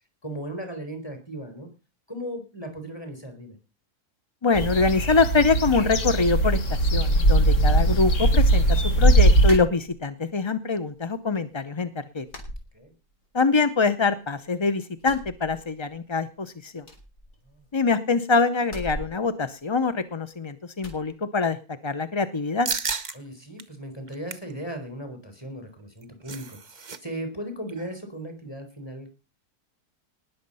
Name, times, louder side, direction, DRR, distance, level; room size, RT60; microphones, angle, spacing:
voice 1, 0.2-1.7 2.1-3.6 12.7-12.9 17.5-17.6 23.1-29.1, right 1 dB, 15° left, 6 dB, 4.0 m, -37 dB
voice 2, 4.4-11.9 12.1-12.2 13.3-16.9 17.7-21.6 21.8-22.7, left 4 dB, 35° left, 11 dB, 0.4 m, -24 dB
sound 1, 4.5-9.6, right 1 dB, 55° left, 1.9 m, -20 dB
sound 2, 9.4-10.3 10.7-11.4 11.7-11.8 12.3-13.4 13.7-14.5 14.9-16.1 16.4-16.5 16.8-18.0 18.6-20.3 20.8-21.1, equal, 80° left, 4.0 m, -42 dB
sound 3, 22.7-23.2 23.6-23.7 24.1-24.5 25.8-27.0 27.2-27.4 27.7-28.0, right 5 dB, 35° right, 1.0 m, -32 dB
19.5 x 7.3 x 5.5 m, 0.31 s
omnidirectional pair, 1.6 m